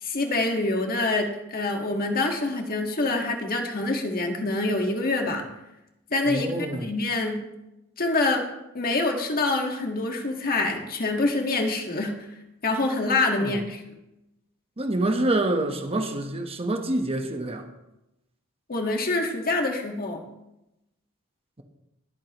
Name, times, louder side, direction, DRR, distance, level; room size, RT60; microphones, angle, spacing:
voice 1, 0.0-5.4 6.1-6.5 6.8-7.4 8.0-8.5 8.7-12.1 12.6-13.8 18.7-20.2, left 2 dB, 45° left, 3 dB, 1.7 m, -26 dB
voice 2, 6.3-6.9 13.4-13.6 14.8-17.7, right 1 dB, 25° right, 5 dB, 1.1 m, -26 dB
22.5 x 8.5 x 3.1 m, 0.91 s
head